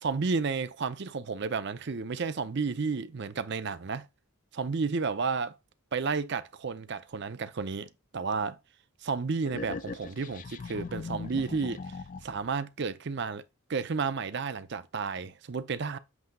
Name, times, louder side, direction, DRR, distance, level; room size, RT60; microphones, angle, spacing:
voice 1, 0.0-4.0 4.6-5.5 5.9-8.6 9.0-11.9 12.2-13.4 13.7-16.0, right 4 dB, 50° right, 0.5 m, -32 dB
sound 1, 9.5-12.5, left 4 dB, 35° left, 0.4 m, -40 dB
8.0 x 2.7 x 5.3 m
head